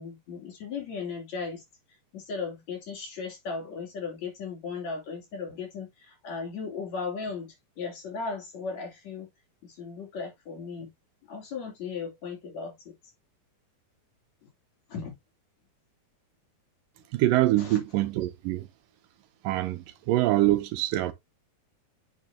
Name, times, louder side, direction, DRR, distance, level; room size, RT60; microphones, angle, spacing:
voice 1, 0.0-1.6 2.1-9.3 9.6-10.9 11.3-12.9 14.9-15.1 17.5-17.8, left 5 dB, 50° left, 4.1 m, -36 dB
voice 2, 17.1-18.7 19.4-21.1, right 16 dB, 80° right, 2.2 m, -25 dB
9.6 x 6.0 x 2.7 m
omnidirectional pair, 4.2 m